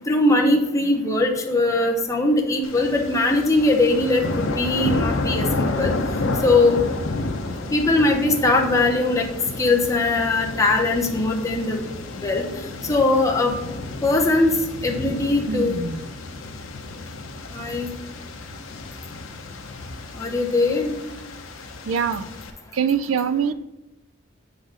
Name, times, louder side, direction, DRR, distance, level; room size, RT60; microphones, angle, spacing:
voice 1, 0.1-5.9 6.4-6.8 7.7-9.3 9.6-11.8 12.2-12.4 12.9-13.5 14.0-14.5 14.8-15.8 17.5-17.9 20.1-20.9, left 2 dB, 15° left, 0 dB, 0.7 m, -20 dB
sound 1, 2.6-22.5, left 2 dB, 85° left, 0.7 m, -31 dB
voice 2, 15.5-16.0 21.9-22.3 22.7-23.5, right 6 dB, 90° right, 14 dB, 0.4 m, -23 dB
7.5 x 4.1 x 4.9 m, 0.95 s
head